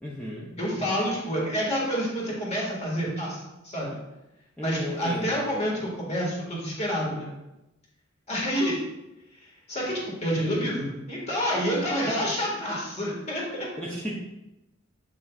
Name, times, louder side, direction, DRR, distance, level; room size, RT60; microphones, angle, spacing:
voice 1, 0.0-0.5 4.6-5.4 13.8-14.2, equal, 5° left, -6 dB, 0.7 m, -34 dB
voice 2, 0.6-4.0 4.6-7.3 8.3-8.8 9.4-13.7, equal, 30° left, -3 dB, 1.9 m, -28 dB
7.9 x 6.1 x 2.4 m, 0.95 s
head